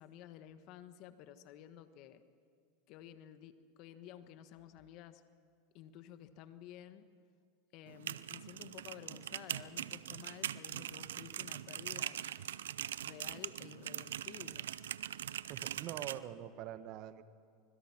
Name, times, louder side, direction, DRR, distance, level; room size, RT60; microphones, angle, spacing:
voice 1, 0.0-2.2 2.9-5.2 5.7-7.1 7.7-12.3 13.0-14.7, left 11 dB, 55° left, 10 dB, 1.4 m, -53 dB
sound 1, 7.9-16.2, right 11 dB, 90° right, 0.5 m, -42 dB
voice 2, 15.5-17.2, right 11 dB, 50° right, 12 dB, 1.2 m, -44 dB
25.0 x 22.0 x 6.0 m, 2.2 s
supercardioid pair, 115°, 0 cm